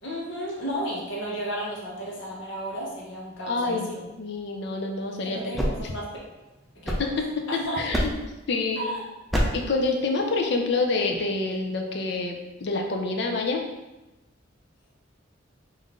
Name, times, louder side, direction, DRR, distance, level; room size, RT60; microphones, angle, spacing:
voice 1, 0.0-4.1 5.2-6.1 6.7-7.1 7.5-7.9 8.8-9.0, equal, 75° left, -4 dB, 1.1 m, -33 dB
voice 2, 3.5-3.9 4.2-5.4 5.8-5.9 7.0-8.1 8.5-8.9 9.5-13.6, left 3 dB, 60° left, 3 dB, 0.5 m, -27 dB
sound 1, 5.3-7.5 7.9-8.4 9.3-9.8, equal, ahead, 0.4 m, -28 dB
3.7 x 2.6 x 3.6 m, 1.0 s
head